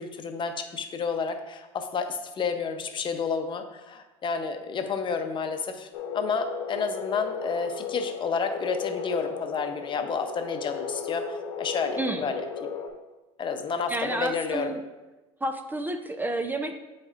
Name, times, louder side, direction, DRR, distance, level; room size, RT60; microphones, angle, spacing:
voice 1, 0.0-5.9 6.1-12.7 13.4-14.7, left 5 dB, 35° left, 6 dB, 0.8 m, -30 dB
sound 1, 5.9-12.9, left 6 dB, 85° left, 1.0 m, -36 dB
voice 2, 13.9-14.8 15.4-16.8, right 2 dB, 10° right, 7 dB, 0.5 m, -30 dB
9.7 x 4.2 x 2.5 m, 1.1 s
supercardioid pair, 95°, 15 cm